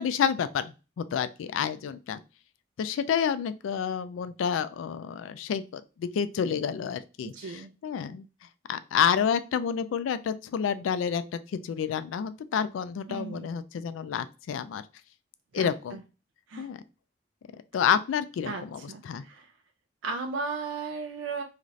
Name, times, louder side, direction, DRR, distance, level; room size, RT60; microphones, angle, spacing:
voice 1, 0.0-2.2 2.8-8.3 8.7-11.2 11.5-14.8 15.5-16.0 16.6-16.8 17.7-19.2, left 7 dB, 90° left, 14 dB, 0.3 m, -29 dB
voice 2, 7.3-7.7 13.1-13.5 15.5-16.0 16.5-16.7 18.5-19.5 20.0-21.4, right 4 dB, 85° right, 5 dB, 0.4 m, -36 dB
2.5 x 2.4 x 3.1 m, 0.31 s
head